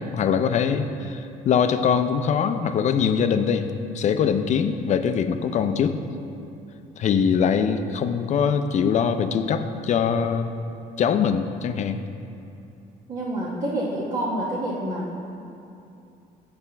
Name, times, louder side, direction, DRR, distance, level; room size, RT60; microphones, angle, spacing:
voice 1, 0.0-3.7 3.9-6.0 7.0-10.5 11.0-12.0, left 7 dB, 45° left, 9 dB, 0.5 m, -22 dB
voice 2, 13.1-15.1, right 1 dB, 40° right, -6 dB, 1.2 m, -27 dB
8.1 x 4.3 x 5.8 m, 2.7 s
cardioid pair, 110°, 17 cm